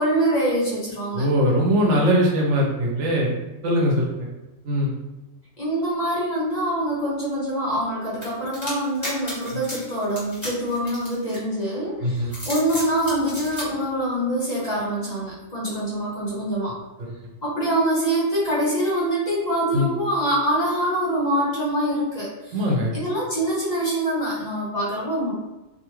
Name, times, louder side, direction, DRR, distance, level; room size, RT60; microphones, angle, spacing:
voice 1, 0.0-1.2 5.6-16.7 17.4-22.5 22.9-25.3, right 1 dB, 40° left, -7 dB, 1.0 m, -24 dB
voice 2, 1.1-3.3 3.6-4.3 4.6-4.9 9.5-9.6 12.0-12.3 19.7-19.9 22.5-22.9, equal, 80° right, -2 dB, 1.0 m, -21 dB
sound 1, 8.2-11.7 12.2-13.7, left 1 dB, 25° left, 1.3 m, -34 dB
2.6 x 2.4 x 3.0 m, 1.0 s
omnidirectional pair, 1.2 m